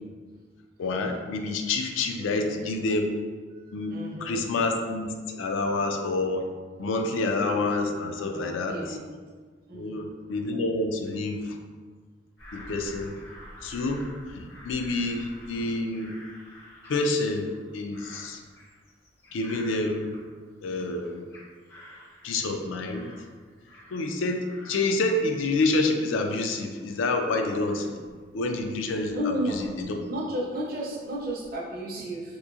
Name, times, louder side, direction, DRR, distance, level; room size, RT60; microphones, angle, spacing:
voice 1, 0.8-3.1 3.7-6.5 6.8-9.0 9.7-11.6 12.5-13.2 13.6-16.1 16.9-18.4 19.3-20.2 20.6-21.3 22.2-23.3 23.9-28.0 28.3-30.1, left 2 dB, 85° left, 4 dB, 0.3 m, -28 dB
voice 2, 3.5-4.4 8.2-9.1 9.7-10.1 29.1-29.6 30.1-32.4, equal, 50° right, -3 dB, 0.5 m, -33 dB
Bird vocalization bird call bird song / Crow, 12.4-20.7 21.0-24.2 24.4-30.5 31.0-31.6, left 1 dB, 65° left, 0.7 m, -50 dB
2.9 x 2.6 x 2.3 m, 1.5 s
head